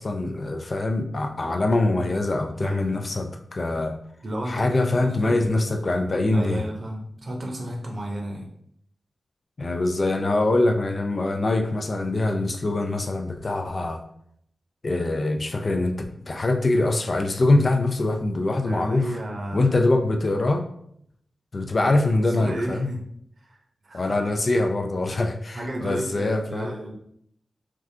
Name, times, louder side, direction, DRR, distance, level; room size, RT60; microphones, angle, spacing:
voice 1, 0.0-4.0 4.5-6.7 9.6-14.0 14.8-19.0 19.5-20.7 21.5-22.9 23.9-26.7, left 2 dB, 50° left, 5 dB, 0.4 m, -23 dB
voice 2, 2.6-3.2 4.2-5.4 6.3-8.5 18.6-19.7 21.7-23.0 23.4-24.1 25.5-26.9, right 1 dB, 55° right, 0 dB, 0.8 m, -33 dB
3.4 x 2.4 x 2.7 m, 0.69 s
cardioid pair, 70°, 0 cm